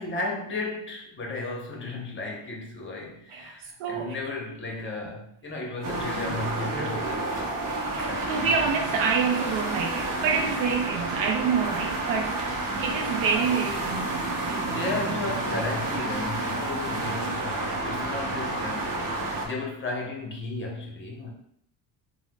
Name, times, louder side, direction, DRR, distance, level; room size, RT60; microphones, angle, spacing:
voice 1, 0.0-7.5 8.0-8.5 14.6-19.1 19.4-21.3, left 2 dB, 25° left, -1 dB, 0.8 m, -34 dB
voice 2, 3.3-4.2 7.7-12.4 12.8-15.2, right 6 dB, 85° right, 2 dB, 0.5 m, -28 dB
sound 1, 5.8-19.5, right 2 dB, 45° right, 0.8 m, -30 dB
4.0 x 2.1 x 2.2 m, 0.71 s
cardioid pair, 95°, 46 cm